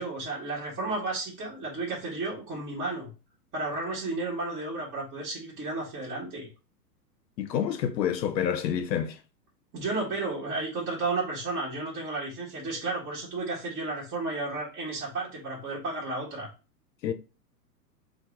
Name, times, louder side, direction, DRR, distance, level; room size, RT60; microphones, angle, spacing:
voice 1, 0.0-3.1 3.5-6.5 9.7-16.5, right 3 dB, 20° right, 1.1 m, -33 dB
voice 2, 7.4-9.2 17.0-17.1, left 9 dB, 90° left, 0.6 m, -28 dB
2.9 x 2.0 x 3.4 m
hypercardioid pair, 120°, 50 cm